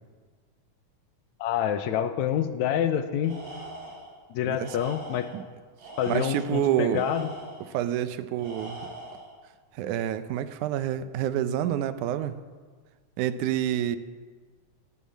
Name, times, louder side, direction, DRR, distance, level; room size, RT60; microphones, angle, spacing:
voice 1, 1.4-3.4 4.3-5.3 6.0-7.3, left 9 dB, 75° left, 10 dB, 2.1 m, -27 dB
Tools, 3.2-4.1 4.6-5.4 5.8-7.7 8.4-9.3, right 1 dB, 40° right, 5.4 m, -42 dB
voice 2, 4.4-4.8 5.3-5.4 6.1-7.1 7.7-8.8 9.8-12.4 13.2-14.0, right 11 dB, 85° right, 11 dB, 2.2 m, -28 dB
19.0 x 7.5 x 8.4 m, 1.5 s
omnidirectional pair, 3.5 m